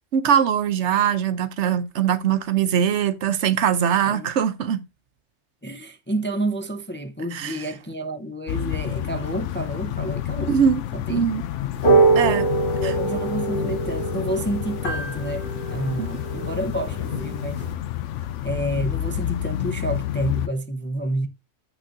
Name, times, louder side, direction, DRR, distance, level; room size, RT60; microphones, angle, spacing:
voice 1, 0.1-4.8 7.3-7.6 10.4-10.8 11.1-11.4 12.2-12.5 12.8-12.9 16.0-16.1, right 8 dB, 75° right, 1.0 m, -22 dB
voice 2, 5.6-10.6 10.9-11.3 12.0-12.1 12.6-17.6 18.4-21.3, right 1 dB, 15° left, 0.5 m, -29 dB
sound 1, 8.5-20.5, left 12 dB, 90° left, 0.9 m, -29 dB
sound 2, 11.7-17.7, right 3 dB, 60° left, 1.9 m, -24 dB
8.1 x 6.2 x 2.5 m
omnidirectional pair, 1.2 m